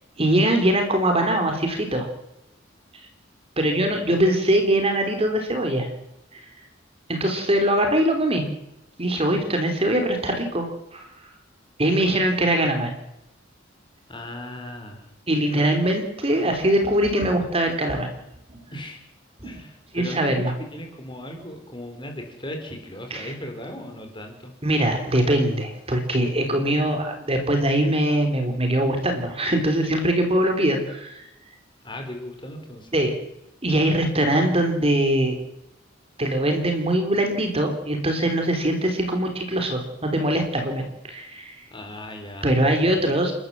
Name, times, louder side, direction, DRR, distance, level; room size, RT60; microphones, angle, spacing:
voice 1, 0.2-2.1 3.6-5.9 6.3-6.4 7.1-8.4 9.0-10.7 10.9-11.0 11.8-12.9 15.3-18.1 18.5-18.6 19.4-19.5 19.9-20.5 23.1-23.3 24.6-31.2 32.9-33.1 33.6-35.4 36.2-41.6 42.4-43.3, right 1 dB, 30° right, 5 dB, 3.5 m, -22 dB
voice 2, 3.9-4.2 14.1-15.0 18.7-19.0 19.4-24.5 31.8-32.9 41.7-43.1, left 1 dB, 25° left, 4 dB, 4.5 m, -37 dB
30.0 x 12.5 x 7.5 m, 0.86 s
head